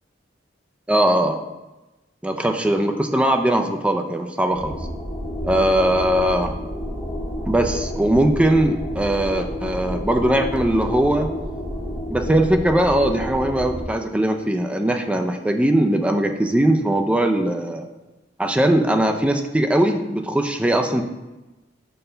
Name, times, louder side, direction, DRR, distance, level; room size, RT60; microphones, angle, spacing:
voice 1, 0.9-1.4 2.2-4.8 5.4-6.5 7.5-11.3 12.1-17.9 18.4-21.0, right 1 dB, 5° right, 4 dB, 0.4 m, -20 dB
sound 1, 4.5-13.8, equal, 10° left, 1.9 m, -30 dB
6.7 x 4.3 x 3.3 m, 1.1 s
head